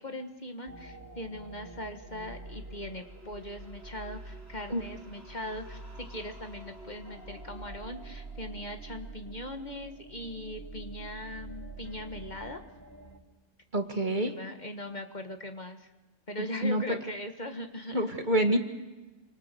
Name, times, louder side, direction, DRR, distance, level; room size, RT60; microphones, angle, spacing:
voice 1, 0.0-12.6 14.1-15.9 16.3-18.1, left 1 dB, 40° left, 6 dB, 1.6 m, -40 dB
sound 1, 0.7-13.2, right 3 dB, 60° right, 2.9 m, -46 dB
voice 2, 13.7-14.3 16.6-16.8 17.9-18.6, right 1 dB, 40° right, 6 dB, 1.9 m, -26 dB
28.5 x 25.5 x 6.8 m, 1.2 s
omnidirectional pair, 1.2 m